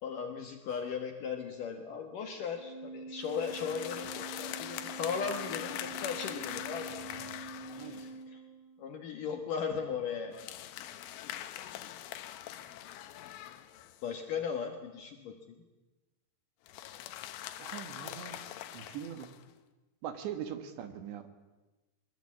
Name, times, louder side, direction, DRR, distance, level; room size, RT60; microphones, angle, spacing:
voice 1, 0.0-7.4 7.7-8.4 8.8-10.4 14.0-15.6, left 6 dB, 60° left, 5 dB, 2.3 m, -37 dB
sound 1, 0.7-1.0 3.2-8.2 10.3-14.2 16.7-19.4, left 12 dB, 90° left, 3.6 m, -43 dB
Organ, 2.5-9.0, right 3 dB, 55° right, 7.4 m, -46 dB
voice 2, 17.6-19.4 20.0-21.3, right 9 dB, 70° right, 9 dB, 3.6 m, -42 dB
22.5 x 21.5 x 8.5 m, 1.1 s
omnidirectional pair, 5.5 m